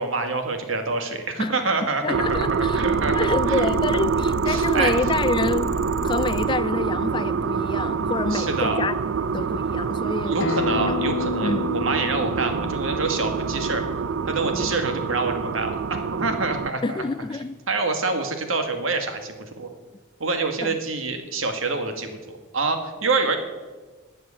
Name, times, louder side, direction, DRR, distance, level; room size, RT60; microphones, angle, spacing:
voice 1, 0.0-3.7 3.9-4.0 4.5-4.9 8.3-8.8 10.2-13.8 14.3-17.0 17.7-19.7 20.2-23.4, right 3 dB, 85° right, 1.8 m, -26 dB
voice 2, 2.0-2.8 3.1-5.7 6.0-8.9 9.3-10.4 10.9-11.0 11.4-11.7 14.5-14.7 16.8-17.6 20.6-20.8, left 3 dB, 25° left, 0.4 m, -27 dB
sound 1, 2.1-16.7, right 5 dB, 70° right, 0.4 m, -25 dB
sound 2, 2.2-6.5, left 1 dB, 85° left, 1.1 m, -34 dB
Acoustic guitar, 10.4-15.6, left 5 dB, 70° left, 0.6 m, -32 dB
13.0 x 7.7 x 8.3 m
head